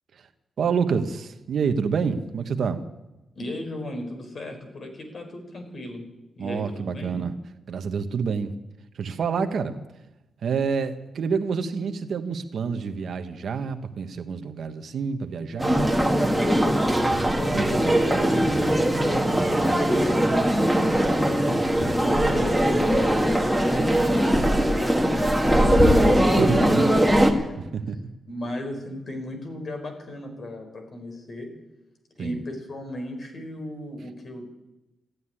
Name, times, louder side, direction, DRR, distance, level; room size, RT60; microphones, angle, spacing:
voice 1, 0.6-2.8 6.4-7.3 7.7-8.5 8.9-9.8 10.4-15.9 17.5-18.0 24.3-24.6 26.4-26.9 27.7-28.1 32.2-32.4, right 5 dB, 65° right, 7 dB, 1.2 m, -28 dB
voice 2, 3.4-6.0 6.4-7.2 17.4-20.8 21.5-27.6 28.3-31.5 32.2-34.5, left 1 dB, 50° left, 4 dB, 4.4 m, -36 dB
sound 1, 15.6-27.3, equal, 5° right, 1.8 m, -20 dB
15.0 x 9.6 x 9.8 m, 0.99 s
cardioid pair, 110°, 0 cm